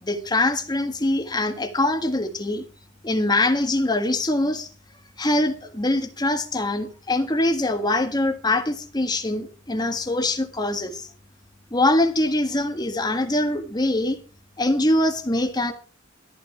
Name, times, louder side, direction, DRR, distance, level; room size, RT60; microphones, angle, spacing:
voice 1, 0.0-2.6 3.0-4.7 5.2-11.1 11.7-14.2 14.6-15.7, left 1 dB, 20° left, 1.7 m, -23 dB
14.5 x 12.0 x 4.7 m
head